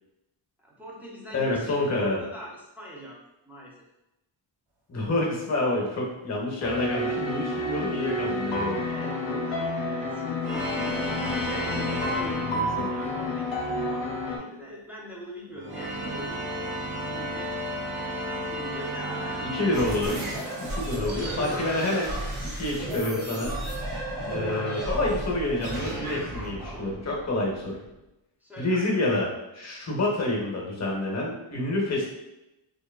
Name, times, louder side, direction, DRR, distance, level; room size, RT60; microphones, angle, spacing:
voice 1, 0.6-3.2 3.4-3.8 5.1-5.3 8.8-12.6 12.9-16.4 17.0-17.7 18.0-19.5 20.7-22.0 28.4-29.0, equal, 5° right, -5 dB, 0.5 m, -42 dB
voice 2, 1.3-2.2 4.9-8.9 12.4-12.9 16.0-16.1 19.4-20.2 20.6-22.1 22.4-23.5 24.3-27.8 28.6-32.1, left 2 dB, 35° left, -2 dB, 0.7 m, -28 dB
sound 1, 6.6-14.4, left 1 dB, 70° left, 0.6 m, -30 dB
sound 2, 10.4-13.2 15.5-20.7, equal, 50° right, 0.8 m, -33 dB
sound 3, 19.7-27.9, right 1 dB, 80° right, 1.0 m, -33 dB
2.7 x 2.3 x 2.2 m, 0.92 s
wide cardioid pair, 95°, 48 cm